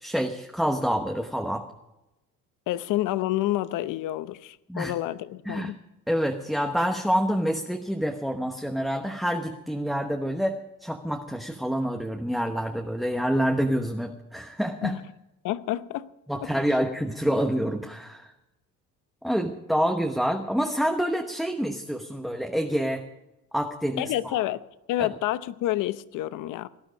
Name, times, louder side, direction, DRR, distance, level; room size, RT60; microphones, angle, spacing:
voice 1, 0.0-1.6 4.7-4.9 5.5-5.7 6.1-10.6 10.8-15.0 16.3-18.3 19.2-23.0 23.5-24.4 25.0-25.1, equal, ahead, 1.0 m, -27 dB
voice 2, 2.7-5.8 14.8-15.0 15.4-16.1 24.0-24.6 24.9-26.7, left 14 dB, 75° left, 0.9 m, -28 dB
18.0 x 12.0 x 5.2 m
cardioid pair, 135°, 32 cm